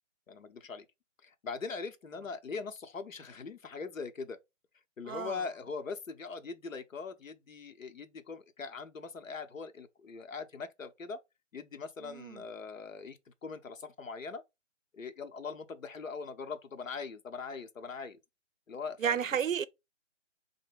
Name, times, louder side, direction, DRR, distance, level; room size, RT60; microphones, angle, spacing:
voice 1, 0.3-0.8 1.2-4.4 5.0-11.2 11.5-14.4 14.9-18.2 18.7-19.2, left 5 dB, 85° left, 0.8 m, -41 dB
voice 2, 5.1-5.4 12.0-12.4 19.0-19.6, right 8 dB, 85° right, 0.5 m, -32 dB
3.8 x 2.1 x 3.3 m
figure-of-eight pair, 140°, 38 cm